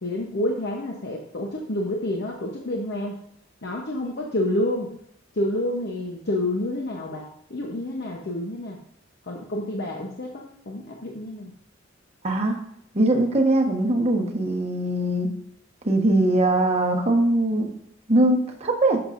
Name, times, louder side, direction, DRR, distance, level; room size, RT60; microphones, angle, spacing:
voice 1, 0.0-3.1 3.6-4.9 5.3-8.8 9.3-11.5, left 1 dB, 60° left, 0 dB, 0.9 m, -28 dB
voice 2, 12.2-12.6 12.9-15.3 15.8-17.6 18.1-19.0, right 1 dB, 35° right, 1 dB, 1.2 m, -21 dB
10.5 x 6.8 x 2.6 m, 0.71 s
head